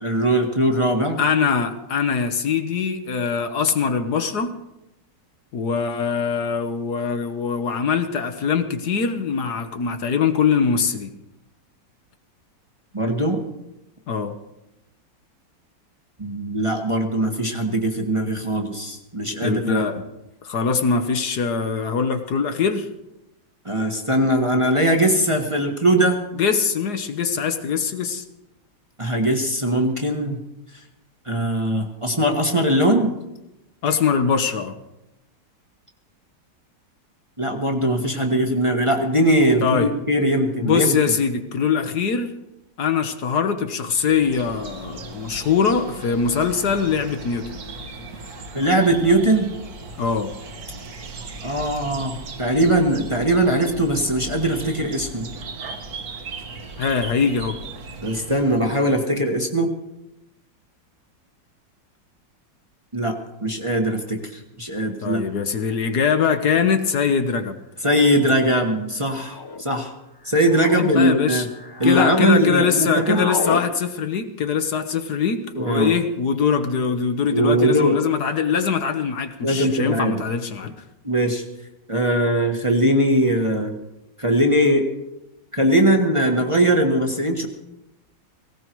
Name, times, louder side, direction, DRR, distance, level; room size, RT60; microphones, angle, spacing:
voice 1, 0.0-1.2 12.9-13.4 16.2-19.8 23.6-26.2 29.0-30.4 31.2-33.1 37.4-41.0 48.5-49.5 51.4-55.3 58.0-59.7 62.9-65.2 67.8-69.9 70.2-71.5 71.8-73.3 75.5-75.9 77.3-78.0 79.4-80.2 81.0-81.4 81.9-83.7 84.2-84.9 85.5-87.5, right 1 dB, 20° right, 2 dB, 1.4 m, -20 dB
voice 2, 1.2-4.5 5.5-11.1 14.1-14.3 19.4-20.0 20.4-22.9 26.4-28.2 33.8-34.7 39.6-39.9 40.6-42.3 42.8-47.6 50.0-50.3 56.8-57.6 65.0-67.6 70.7-71.5 71.8-80.7, left 6 dB, 60° left, 8 dB, 1.6 m, -22 dB
sound 1, 44.0-58.8, right 3 dB, 55° right, 1.9 m, -37 dB
sound 2, 65.6-65.7 66.7-67.0 67.9-68.3 69.2-69.6 70.2-70.9 71.4-72.3 72.5-73.6, left 3 dB, 35° left, 0.3 m, -31 dB
18.0 x 17.0 x 4.6 m, 0.91 s
omnidirectional pair, 2.0 m